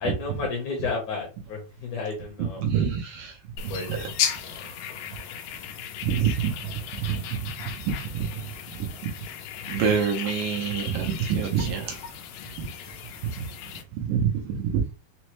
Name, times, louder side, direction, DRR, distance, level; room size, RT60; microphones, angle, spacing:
voice 1, 0.0-2.7 3.7-4.1, left 4 dB, 70° left, 2.0 m, -32 dB
voice 2, 2.6-3.3 6.0-6.5 7.0-7.5 7.9-8.3 8.8-8.9 9.7-12.0 12.6-12.7 14.0-14.8, right 7 dB, 80° right, 2.0 m, -26 dB
sound 1, 3.6-13.8, left 9 dB, 85° left, 2.6 m, -36 dB
6.1 x 2.1 x 3.1 m
omnidirectional pair, 4.5 m